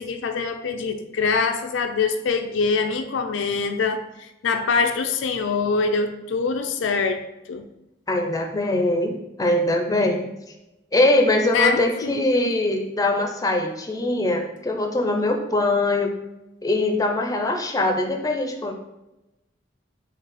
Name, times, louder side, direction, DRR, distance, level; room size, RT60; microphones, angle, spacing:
voice 1, 0.0-7.2 7.5-7.7 11.5-12.1, left 4 dB, 75° left, 6 dB, 0.4 m, -24 dB
voice 2, 8.1-10.3 10.9-16.1 16.6-18.7, left 2 dB, 20° left, 3 dB, 0.5 m, -22 dB
5.2 x 2.3 x 4.0 m, 0.93 s
head